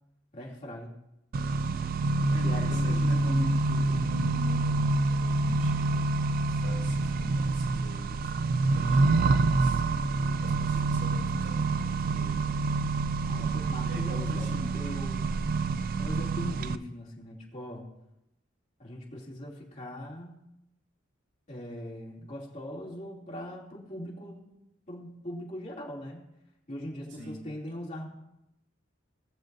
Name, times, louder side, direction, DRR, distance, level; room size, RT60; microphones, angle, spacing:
voice 1, 0.3-0.9 2.2-3.4 13.3-15.3 16.0-17.9 18.8-20.5 21.5-24.5 24.9-26.2 26.7-28.1, left 1 dB, 40° left, -4 dB, 2.7 m, -41 dB
Accelerating revving vroom, 1.3-16.8, right 3 dB, 50° right, 0.3 m, -27 dB
voice 2, 2.3-6.2 6.5-12.6 13.7-14.8 27.2-27.4, equal, 75° right, -2 dB, 2.5 m, -41 dB
19.0 x 7.2 x 2.7 m, 0.86 s
head